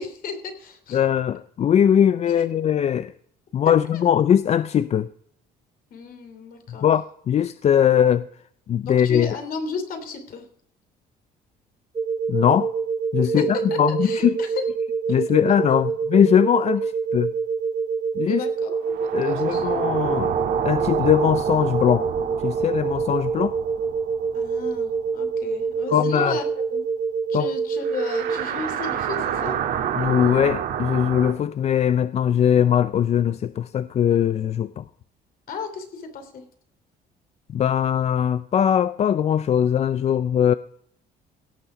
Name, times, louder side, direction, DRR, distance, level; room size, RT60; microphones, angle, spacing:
voice 1, 0.0-1.0 3.9-4.0 5.9-6.9 8.8-10.4 13.2-14.5 18.3-18.9 19.2-19.6 24.3-26.4 26.7-26.8 27.3-29.6 35.5-36.4, left 4 dB, 60° left, 3.0 m, -34 dB
voice 2, 0.9-3.1 3.5-5.1 6.7-8.3 8.7-9.4 12.3-12.7 13.1-14.4 15.1-17.3 18.2-18.4 19.1-20.3 20.6-22.1 22.4-23.6 25.9-26.4 27.3-27.5 30.0-34.8 37.5-40.5, left 9 dB, 40° left, 0.4 m, -20 dB
sound 1, 12.0-28.4, right 5 dB, 30° right, 0.9 m, -26 dB
sound 2, 18.8-25.5 25.7-25.8 27.8-31.3, right 8 dB, 65° right, 1.9 m, -29 dB
17.0 x 6.9 x 5.0 m
cardioid pair, 110°, 17 cm